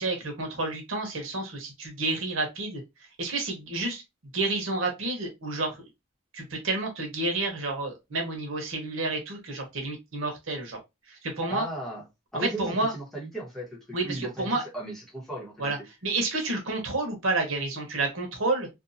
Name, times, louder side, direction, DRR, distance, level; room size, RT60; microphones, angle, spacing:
voice 1, 0.0-2.8 3.2-4.0 4.3-5.9 6.3-10.8 11.2-11.6 12.3-12.9 13.9-14.6 15.6-15.8 16.0-18.7, right 2 dB, 85° right, 1.0 m, -30 dB
voice 2, 11.5-12.0 12.3-15.7, right 1 dB, ahead, 1.0 m, -36 dB
2.7 x 2.3 x 2.6 m
head